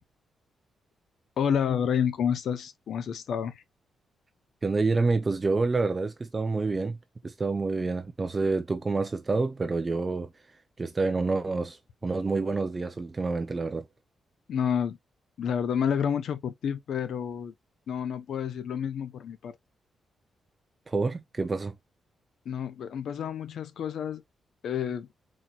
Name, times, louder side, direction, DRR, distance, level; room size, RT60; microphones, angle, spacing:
voice 1, 1.4-3.6 14.5-15.0 15.4-17.5 17.9-19.6 22.5-24.2 24.6-25.1, left 8 dB, 65° left, 0.7 m, -29 dB
voice 2, 4.6-7.0 7.2-10.3 10.8-13.8 20.9-21.7, right 3 dB, 20° right, 0.5 m, -28 dB
4.5 x 4.2 x 2.3 m
wide cardioid pair, 165°, 0 cm